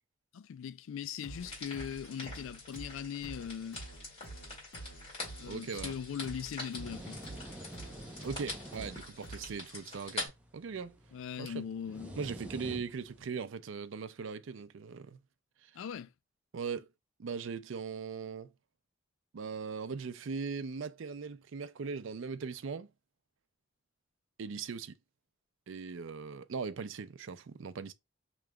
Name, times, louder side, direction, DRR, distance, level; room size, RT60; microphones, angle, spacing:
voice 1, 0.3-3.8 5.4-7.2 11.1-12.2 15.7-16.1, left 8 dB, 80° left, 0.3 m, -40 dB
sound 1, 1.2-9.7, right 2 dB, 60° left, 1.4 m, -50 dB
sound 2, 1.4-10.3, left 2 dB, 30° left, 2.3 m, -45 dB
voice 2, 5.5-6.0 8.2-11.0 11.4-11.6 12.2-15.2 15.6-15.7 16.5-16.9 17.2-18.5 19.3-22.9 24.4-24.9 25.7-27.9, right 5 dB, 75° right, 0.4 m, -39 dB
sound 3, 5.7-13.2, equal, 5° right, 0.6 m, -49 dB
4.8 x 3.0 x 2.2 m
head